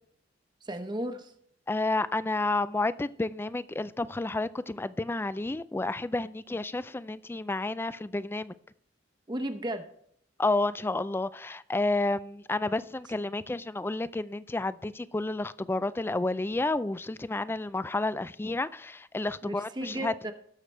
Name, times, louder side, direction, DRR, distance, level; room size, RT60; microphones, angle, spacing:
voice 1, 0.6-1.3 9.3-9.9 19.4-20.3, right 1 dB, 25° right, 1.0 m, -34 dB
voice 2, 1.7-8.5 10.4-20.1, left 2 dB, 10° left, 0.3 m, -30 dB
18.5 x 6.7 x 3.3 m
head